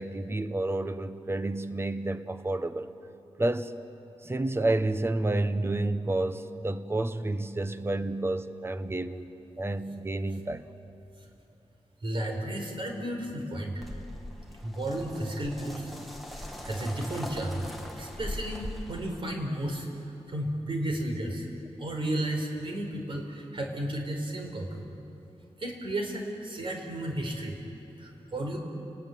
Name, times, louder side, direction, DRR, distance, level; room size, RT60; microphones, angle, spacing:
voice 1, 0.0-2.9 3.4-3.7 4.2-9.3 9.6-10.6, right 2 dB, 20° right, 11 dB, 1.0 m, -30 dB
voice 2, 12.0-13.9 14.6-15.9 16.3-17.6 18.0-19.9 20.3-21.5 21.8-24.8 25.6-27.6 28.0-28.6, right 1 dB, 50° right, 2 dB, 4.6 m, -33 dB
sound 1, 13.8-19.2, left 1 dB, ahead, 2.2 m, -40 dB
29.5 x 19.5 x 9.5 m, 3.0 s
wide cardioid pair, 125°, 11 cm